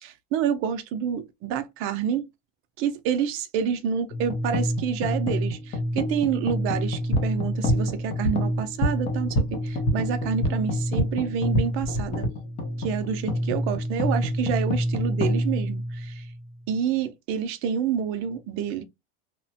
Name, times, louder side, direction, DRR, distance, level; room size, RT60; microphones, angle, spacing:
voice 1, 0.0-2.3 2.8-12.3 12.8-16.3 16.7-18.8, right 8 dB, 40° right, 0.5 m, -28 dB
sound 1, 4.1-16.5, left 1 dB, 20° left, 0.3 m, -28 dB
sound 2, 6.9-11.1 11.4-12.3, equal, 45° left, 0.8 m, -28 dB
2.9 x 2.1 x 2.7 m
supercardioid pair, 150°, 34 cm